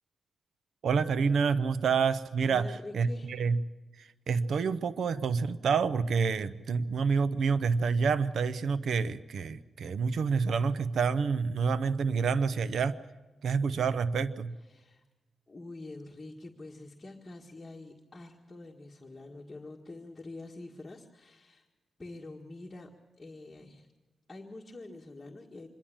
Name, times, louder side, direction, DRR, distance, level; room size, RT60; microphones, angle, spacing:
voice 1, 0.8-3.6 4.0-13.0 13.4-14.6, right 5 dB, 80° right, 15 dB, 0.7 m, -28 dB
voice 2, 2.4-3.3 14.6-15.0 15.5-21.7 22.0-22.9 23.2-23.9 24.3-25.7, left 2 dB, 25° left, -2 dB, 1.8 m, -46 dB
26.0 x 11.5 x 8.7 m, 1.2 s
cardioid pair, 90°, 0 cm